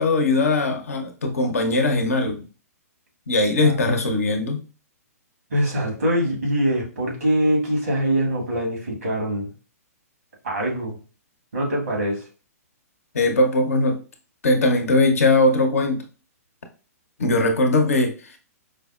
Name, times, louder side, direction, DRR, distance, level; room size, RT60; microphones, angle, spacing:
voice 1, 0.0-2.4 3.3-4.6 13.1-14.0 14.4-16.0 17.2-18.4, left 2 dB, 65° left, 0.8 m, -20 dB
voice 2, 3.6-4.2 5.5-9.5 10.4-11.0 11.5-12.2, right 1 dB, 65° right, 1.6 m, -23 dB
4.9 x 2.0 x 2.3 m
figure-of-eight pair, 120°, 9 cm